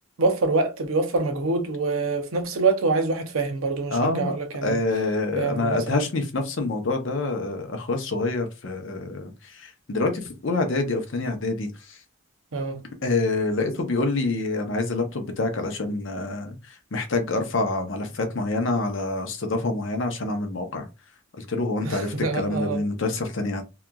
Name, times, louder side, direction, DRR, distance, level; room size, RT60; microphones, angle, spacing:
voice 1, 0.2-4.8 5.4-6.0 12.5-12.8 21.8-22.8, right 3 dB, 75° right, 0.6 m, -25 dB
voice 2, 3.9-4.3 4.6-12.0 13.0-20.9 21.4-23.6, left 2 dB, 60° left, 0.6 m, -26 dB
2.8 x 2.4 x 2.2 m
head